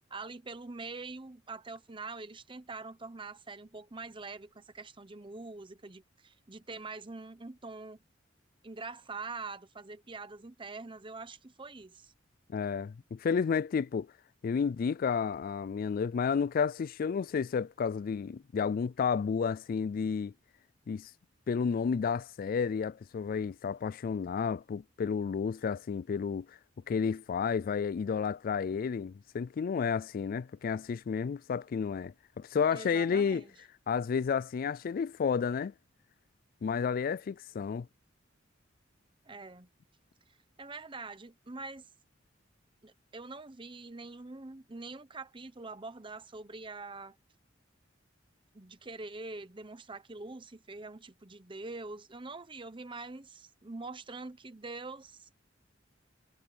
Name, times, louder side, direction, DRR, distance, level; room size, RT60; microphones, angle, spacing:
voice 1, 0.1-8.0 8.6-12.1 32.7-33.5 39.2-39.7 40.6-41.9 42.8-47.2 48.5-55.3, right 3 dB, 25° right, 0.9 m, -44 dB
voice 2, 12.5-14.1 14.4-20.3 20.9-21.1 21.5-26.5 26.9-33.4 33.9-35.7 36.6-37.9, left 6 dB, 45° left, 0.3 m, -31 dB
head